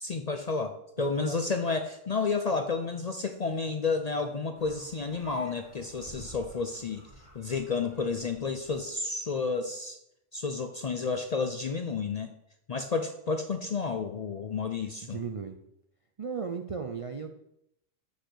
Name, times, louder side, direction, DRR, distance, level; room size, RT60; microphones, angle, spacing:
voice 1, 0.0-7.1 7.3-10.0 10.3-12.3 12.7-15.2, left 4 dB, 55° left, 6 dB, 0.4 m, -31 dB
voice 2, 1.0-1.4 15.0-15.6 16.2-17.3, right 5 dB, 65° right, 5 dB, 0.3 m, -36 dB
sound 1, 4.6-9.1, right 1 dB, 40° right, 2.0 m, -52 dB
6.4 x 5.1 x 6.2 m, 0.79 s
omnidirectional pair, 1.3 m